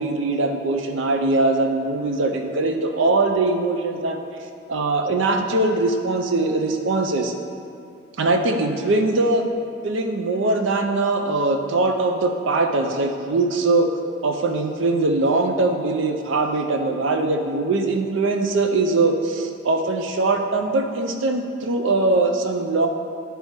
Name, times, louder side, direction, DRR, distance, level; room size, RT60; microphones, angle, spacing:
voice 1, 0.0-4.2 4.7-7.3 8.2-9.4 9.8-13.9 14.2-22.9, right 2 dB, 80° right, 4 dB, 0.5 m, -21 dB
8.7 x 3.4 x 4.4 m, 2.6 s
head